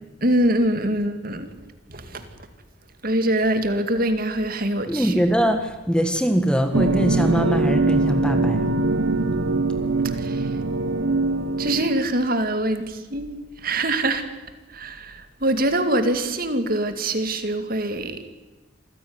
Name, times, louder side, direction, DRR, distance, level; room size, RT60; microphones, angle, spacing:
voice 1, 0.2-1.5 1.9-2.3 3.0-5.1 10.0-10.5 11.6-14.2 14.7-18.2, right 1 dB, 45° right, 8 dB, 2.3 m, -24 dB
voice 2, 4.9-8.7, equal, 5° left, 7 dB, 1.7 m, -22 dB
sound 1, 6.7-12.0, right 2 dB, 75° right, 1.1 m, -22 dB
26.5 x 15.5 x 9.7 m, 1.1 s
head